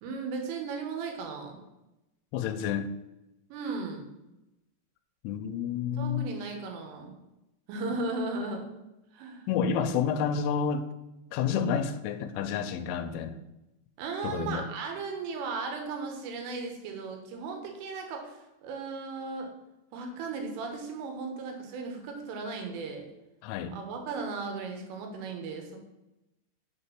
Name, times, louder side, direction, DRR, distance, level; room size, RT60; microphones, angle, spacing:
voice 1, 0.0-1.6 3.5-4.1 6.0-7.1 7.7-8.6 9.1-9.4 14.0-19.5 19.9-23.0 23.7-25.8, right 4 dB, 90° right, 3 dB, 3.8 m, -36 dB
voice 2, 2.3-2.9 5.2-6.3 9.5-10.9 11.3-13.4 14.2-14.7 23.4-23.8, left 7 dB, 90° left, 9 dB, 3.1 m, -29 dB
7.3 x 4.4 x 5.8 m, 0.95 s
omnidirectional pair, 5.6 m